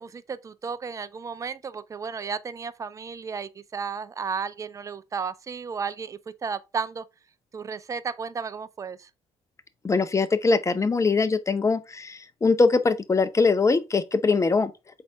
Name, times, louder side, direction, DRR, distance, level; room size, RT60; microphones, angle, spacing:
voice 1, 0.0-7.0 7.5-9.1, right 5 dB, 20° right, 0.4 m, -33 dB
voice 2, 9.8-14.7, left 4 dB, 20° left, 0.6 m, -22 dB
4.0 x 3.4 x 3.6 m
hypercardioid pair, 50°, 15 cm